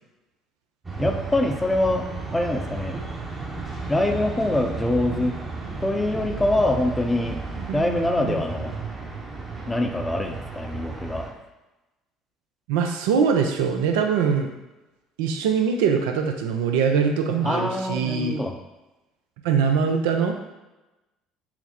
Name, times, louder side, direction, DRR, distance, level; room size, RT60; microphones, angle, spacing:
sound 1, 0.8-11.3, right 4 dB, 25° right, 0.8 m, -34 dB
voice 1, 1.0-2.0 2.3-3.0 3.9-5.4 5.8-7.4 7.7-8.7 9.7-11.2 17.5-18.5, left 1 dB, 15° left, 3 dB, 0.6 m, -24 dB
voice 2, 7.6-8.4 12.7-14.5 15.2-18.4 19.4-20.3, right 6 dB, 75° right, 4 dB, 0.4 m, -23 dB
5.7 x 2.0 x 2.9 m, 1.0 s
hypercardioid pair, 60°, 0 cm